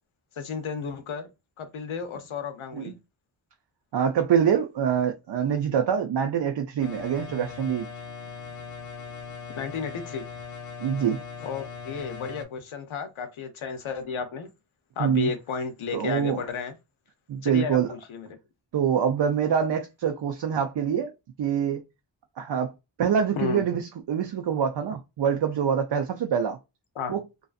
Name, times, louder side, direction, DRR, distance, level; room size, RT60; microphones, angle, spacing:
voice 1, 0.4-1.3 1.6-2.9 9.6-10.2 11.4-14.5 15.0-16.8 17.4-18.3 23.4-23.6 27.0-27.2, left 6 dB, 85° left, 0.7 m, -33 dB
voice 2, 3.9-7.9 10.8-11.2 15.0-15.3 15.9-16.4 17.3-17.9 18.7-21.1 21.4-21.8 22.4-22.7 23.0-26.6 27.1-27.2, right 8 dB, 60° right, 0.5 m, -25 dB
sound 1, 6.8-12.4, left 5 dB, 40° left, 0.5 m, -40 dB
2.6 x 2.4 x 2.4 m
wide cardioid pair, 80°, 47 cm